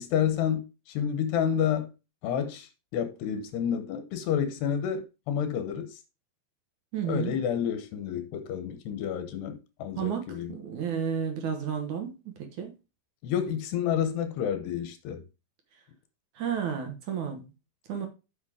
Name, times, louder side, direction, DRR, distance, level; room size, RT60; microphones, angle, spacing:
voice 1, 0.0-1.9 2.2-6.0 7.1-10.5 13.2-15.2, left 8 dB, 80° left, 3.1 m, -29 dB
voice 2, 6.9-7.4 10.0-12.7 16.4-17.5 17.9-18.1, right 7 dB, 60° right, 2.3 m, -32 dB
8.3 x 5.3 x 4.9 m
omnidirectional pair, 4.8 m